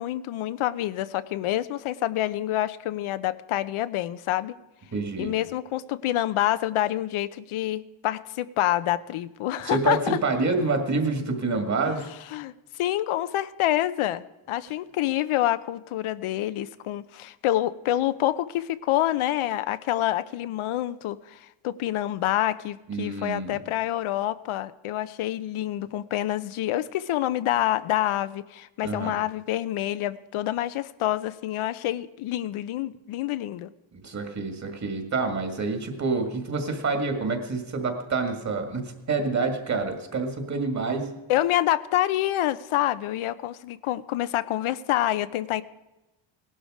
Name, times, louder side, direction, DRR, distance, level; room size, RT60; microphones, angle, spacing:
voice 1, 0.0-4.6 5.2-10.2 11.9-12.5 12.8-14.2 14.5-33.7 41.3-45.6, left 13 dB, 75° left, 14 dB, 0.7 m, -27 dB
voice 2, 4.9-5.3 9.6-12.1 22.9-23.6 28.8-29.1 33.9-41.1, right 3 dB, 35° right, 5 dB, 2.1 m, -27 dB
18.0 x 12.0 x 4.9 m, 1.0 s
cardioid pair, 150°, 50 cm